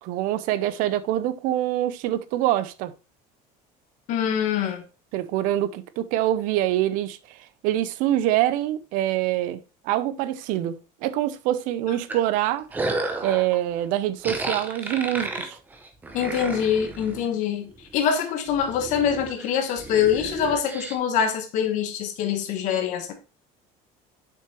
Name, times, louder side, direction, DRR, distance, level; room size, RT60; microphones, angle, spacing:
voice 1, 0.0-2.9 5.1-12.7 13.2-15.6, right 13 dB, 60° right, 0.6 m, -25 dB
voice 2, 4.1-4.8 16.1-23.1, left 8 dB, 50° left, 1.3 m, -24 dB
sound 1, 12.1-13.6 14.2-17.3 17.7-18.2 18.5-21.0, right 2 dB, 10° right, 0.7 m, -32 dB
7.2 x 5.8 x 3.0 m
cardioid pair, 180°, 16 cm